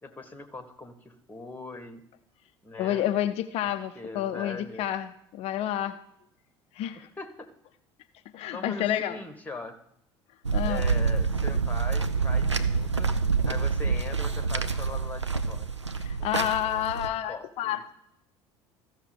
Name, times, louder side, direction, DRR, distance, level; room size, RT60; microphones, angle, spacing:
voice 1, 0.0-2.0 2.6-3.1 3.6-3.7 3.9-4.9 6.9-7.5 8.5-9.8 10.6-13.1 13.4-15.7 16.2-17.9, left 3 dB, 10° left, 8 dB, 1.2 m, -41 dB
voice 2, 2.8-6.0 6.7-7.1 8.3-9.2 10.5-10.8 16.0-17.9, left 11 dB, 45° left, 11 dB, 0.5 m, -29 dB
sound 1, 10.4-17.1, right 5 dB, 90° right, 0.5 m, -27 dB
14.0 x 6.3 x 5.1 m, 0.75 s
figure-of-eight pair, 65°, 15 cm